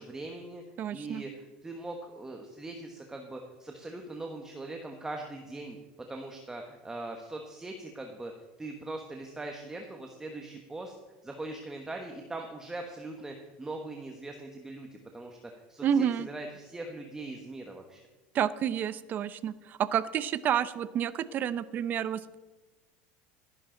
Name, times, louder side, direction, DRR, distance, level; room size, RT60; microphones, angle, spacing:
voice 1, 0.0-0.6 0.9-5.8 6.1-8.3 8.6-10.9 11.2-15.4 15.7-18.0, right 2 dB, 10° right, 3 dB, 1.2 m, -41 dB
voice 2, 0.8-1.2 15.8-16.3 18.3-22.4, right 9 dB, 40° right, 16 dB, 0.7 m, -29 dB
15.0 x 11.0 x 3.9 m, 1.2 s
supercardioid pair, 120°, 5 cm